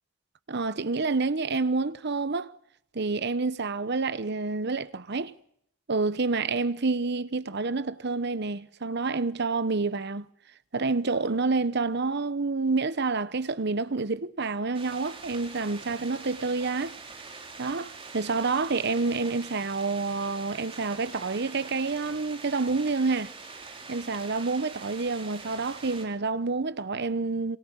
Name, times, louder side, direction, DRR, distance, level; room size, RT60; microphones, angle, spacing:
voice 1, 0.5-2.5 2.9-5.3 5.9-10.3 10.7-17.0 17.6-23.3 23.9-27.6, right 3 dB, 55° right, 1.0 m, -28 dB
sound 1, 14.7-26.1, right 4 dB, 30° right, 5.3 m, -44 dB
28.0 x 24.5 x 6.4 m
head